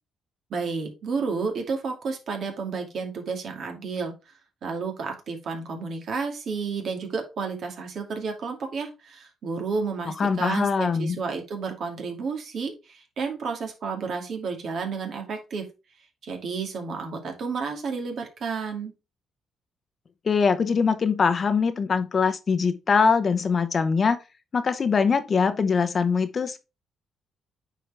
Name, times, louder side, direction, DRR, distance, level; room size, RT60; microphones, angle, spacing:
voice 1, 0.5-4.3 4.6-15.7 16.2-18.9, right 5 dB, 60° right, 2.3 m, -31 dB
voice 2, 10.2-11.2 20.2-24.2 24.5-26.6, left 5 dB, 45° left, 0.8 m, -22 dB
8.8 x 4.6 x 3.4 m
cardioid pair, 90°, 0 cm